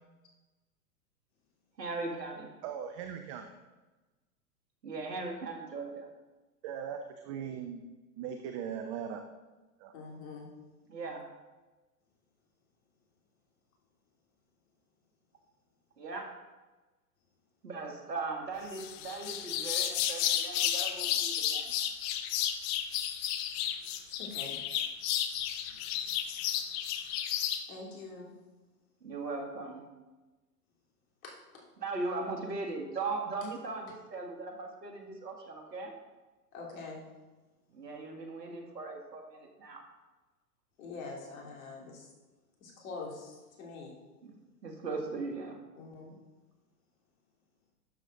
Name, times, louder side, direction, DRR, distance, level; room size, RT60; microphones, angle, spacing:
voice 1, 1.8-2.5 4.8-6.1 10.9-11.3 16.0-16.4 17.6-21.7 29.0-29.9 31.8-35.9 37.7-39.8 44.2-44.4 44.6-45.6, right 3 dB, 85° right, 2 dB, 2.1 m, -38 dB
voice 2, 2.6-3.5 6.6-7.0 7.2-7.8 8.2-9.2 9.8-9.9, right 8 dB, 25° right, 6 dB, 0.4 m, -39 dB
voice 3, 9.9-10.5 24.2-24.6 25.9-26.0 26.8-27.2 27.7-28.3 31.2-31.6 36.5-37.0 40.8-42.1 42.6-43.9 45.7-46.2, left 3 dB, 55° left, -1 dB, 3.2 m, -45 dB
sound 1, 18.7-27.6, left 10 dB, 40° left, 0.9 m, -32 dB
11.5 x 7.1 x 3.9 m, 1.2 s
hypercardioid pair, 110°, 47 cm